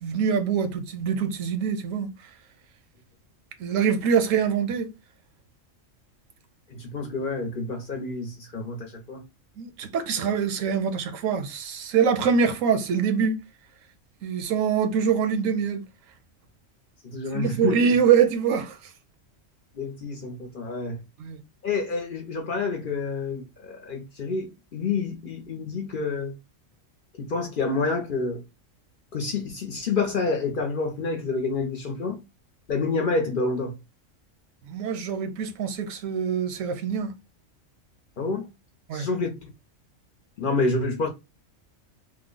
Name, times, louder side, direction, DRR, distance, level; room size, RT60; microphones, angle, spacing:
voice 1, 0.0-2.1 3.6-4.9 9.6-13.4 14.2-15.8 17.3-18.8 21.2-21.4 34.7-37.1 38.9-39.1, right 7 dB, 85° right, 1.1 m, -24 dB
voice 2, 6.7-9.2 17.0-17.8 19.7-21.0 21.6-26.3 27.2-28.4 29.1-32.2 32.7-33.8 38.2-38.5 38.9-39.5 40.4-41.1, left 3 dB, 55° left, 0.7 m, -28 dB
3.0 x 2.1 x 3.7 m
omnidirectional pair, 1.3 m